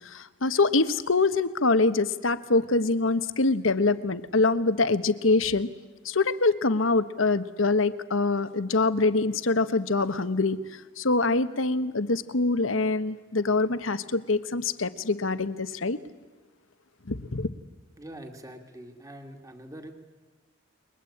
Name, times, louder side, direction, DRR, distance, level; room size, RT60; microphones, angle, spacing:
voice 1, 0.0-5.7 6.0-10.6 11.0-16.0 17.1-17.5, left 3 dB, 80° left, 12 dB, 1.3 m, -24 dB
voice 2, 18.0-19.9, right 1 dB, 15° right, 4 dB, 2.2 m, -44 dB
29.5 x 23.0 x 8.7 m, 1.3 s
head